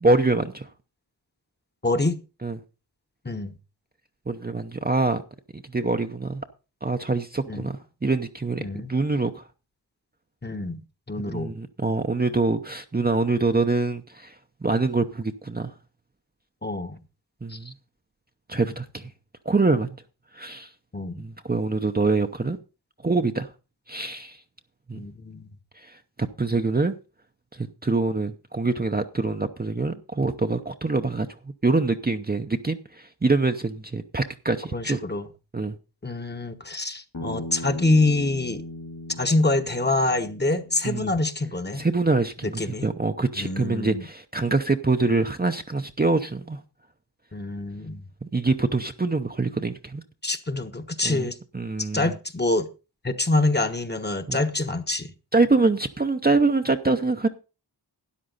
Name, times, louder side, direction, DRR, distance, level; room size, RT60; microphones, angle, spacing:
voice 1, 0.0-0.7 2.4-2.6 4.3-5.2 5.5-6.4 6.8-9.4 11.3-14.3 14.6-15.7 17.4-17.7 18.5-19.1 19.5-19.9 20.3-20.7 21.2-22.6 23.0-23.5 23.9-24.4 24.9-25.0 25.8-26.0 26.4-26.9 27.6-31.3 31.6-35.0 35.5-35.8 40.8-41.1 41.8-46.6 48.2-50.0 51.0-51.3 51.5-52.1 54.3-54.4 55.3-57.3, right 3 dB, 25° right, 0.7 m, -25 dB
voice 2, 1.8-2.2 3.2-3.5 7.5-7.7 8.6-8.9 10.4-10.8 11.1-11.5 16.6-17.0 17.5-17.7 18.6-18.7 20.9-21.2 24.9-25.5 34.7-35.3 36.0-38.6 39.2-41.8 42.4-42.9 43.4-44.0 47.3-48.1 50.2-51.4 51.8-52.7 53.0-55.1, left 2 dB, 25° left, 1.1 m, -26 dB
Bass guitar, 37.1-41.4, left 1 dB, 55° left, 2.2 m, -38 dB
13.0 x 10.0 x 4.0 m
wide cardioid pair, 100°, 40 cm